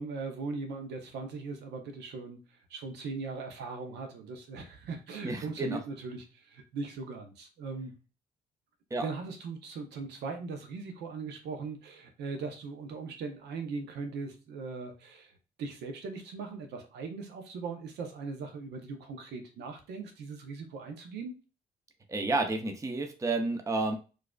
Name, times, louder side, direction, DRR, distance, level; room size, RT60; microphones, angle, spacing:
voice 1, 0.0-2.4 2.7-7.9 9.0-15.3 15.6-21.3, right 4 dB, 80° right, 5 dB, 0.7 m, -39 dB
voice 2, 5.2-5.8 8.9-9.1 22.1-24.0, right 2 dB, 20° right, 5 dB, 0.6 m, -30 dB
4.6 x 2.5 x 2.3 m, 0.34 s
supercardioid pair, 60°, 17 cm